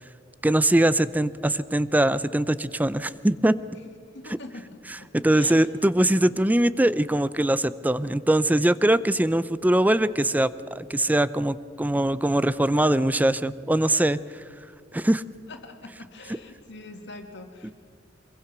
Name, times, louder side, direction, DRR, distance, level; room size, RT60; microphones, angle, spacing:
voice 1, 0.4-3.5 4.9-14.2 14.9-15.2 17.6-17.7, right 1 dB, 10° right, 16 dB, 0.5 m, -22 dB
voice 2, 4.1-5.5 15.5-17.7, left 2 dB, 65° left, 4 dB, 2.3 m, -43 dB
24.5 x 22.5 x 6.0 m, 2.1 s
head